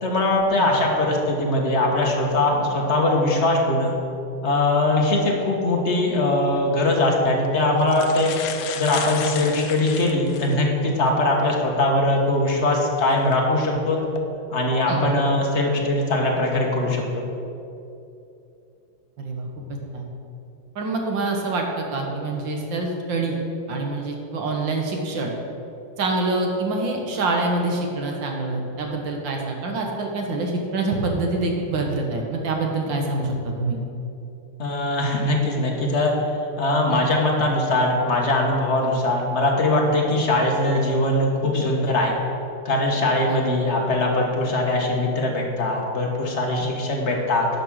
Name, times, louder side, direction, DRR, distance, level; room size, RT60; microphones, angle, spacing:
voice 1, 0.0-4.0 4.4-8.3 8.7-14.0 14.5-17.2 34.6-36.1 36.6-42.1 42.6-47.5, left 2 dB, 35° left, -1 dB, 1.5 m, -21 dB
sound 1, 6.4-6.6 7.4-7.5 7.8-10.6 11.2-11.3 13.1-13.3 13.9-14.2, left 8 dB, 70° left, 1.3 m, -33 dB
voice 2, 19.2-19.6 19.9-20.1 20.7-23.4 23.7-25.3 26.0-33.8 36.9-37.2 38.8-38.9 43.3-43.5 46.6-46.9, right 2 dB, 65° right, 1 dB, 1.8 m, -26 dB
10.5 x 6.0 x 6.4 m, 2.7 s
omnidirectional pair, 2.3 m